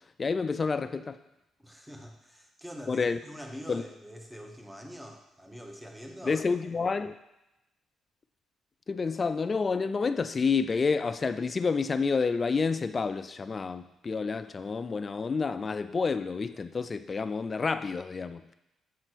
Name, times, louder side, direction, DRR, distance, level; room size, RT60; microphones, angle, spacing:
voice 1, 0.2-1.2 2.9-3.2 3.7-3.8 6.3-7.1 8.9-18.4, left 4 dB, 35° left, 11 dB, 0.3 m, -29 dB
voice 2, 1.6-6.4, equal, 5° right, 2 dB, 1.0 m, -44 dB
7.6 x 3.0 x 4.5 m, 0.91 s
cardioid pair, 90°, 0 cm